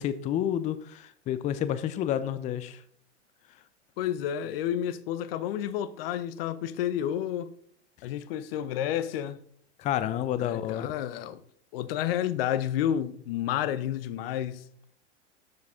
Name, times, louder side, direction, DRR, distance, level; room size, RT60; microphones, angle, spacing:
voice 1, 0.0-2.8 9.8-10.9, left 10 dB, 20° left, 0.5 m, -30 dB
voice 2, 4.0-7.5 8.0-9.4 10.4-11.4 11.7-14.6, left 10 dB, 55° left, 0.7 m, -30 dB
12.5 x 4.8 x 3.6 m
hypercardioid pair, 110°, 35 cm